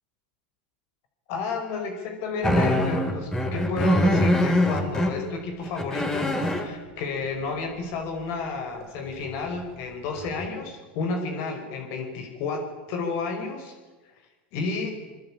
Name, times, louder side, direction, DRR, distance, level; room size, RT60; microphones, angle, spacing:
voice 1, 1.3-13.7 14.5-15.0, left 4 dB, 55° left, 5 dB, 5.0 m, -31 dB
sound 1, 2.4-5.1 5.6-6.7 9.5-9.6 10.2-10.5, left 1 dB, 10° left, 3.7 m, -23 dB
24.0 x 23.0 x 8.7 m, 1.2 s
supercardioid pair, 120°, 5 cm